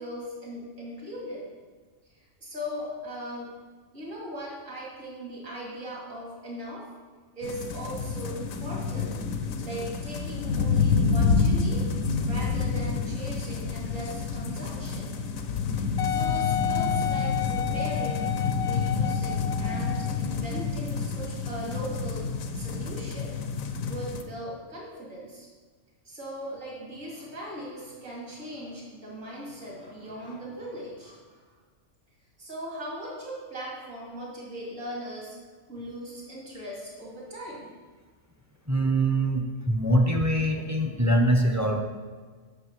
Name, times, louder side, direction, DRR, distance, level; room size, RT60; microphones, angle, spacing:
voice 1, 0.0-1.4 2.1-3.5 3.9-6.8 7.3-9.2 9.6-11.9 12.3-15.1 15.7-22.3 22.5-23.3 23.8-25.5 26.0-31.4 32.4-35.3 35.7-37.7, equal, 65° right, -5 dB, 3.0 m, -39 dB
sound 1, 7.4-24.2, left 5 dB, 80° left, 1.2 m, -28 dB
Wind instrument woodwind instrument, 16.0-20.3 20.9-21.0, left 11 dB, 60° left, 0.7 m, -31 dB
voice 2, 38.7-41.8, right 1 dB, 15° right, 3 dB, 0.6 m, -23 dB
7.7 x 6.5 x 7.5 m, 1.5 s
omnidirectional pair, 1.4 m